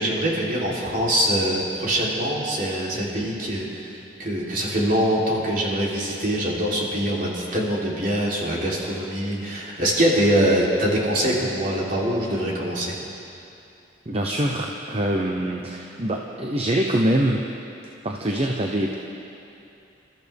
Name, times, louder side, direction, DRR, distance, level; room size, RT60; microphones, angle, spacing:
voice 1, 0.0-12.9, right 1 dB, 50° right, -5 dB, 3.5 m, -23 dB
voice 2, 14.1-17.5 18.0-19.0, right 1 dB, 35° right, 1 dB, 0.9 m, -24 dB
28.0 x 14.0 x 3.6 m, 2.8 s
head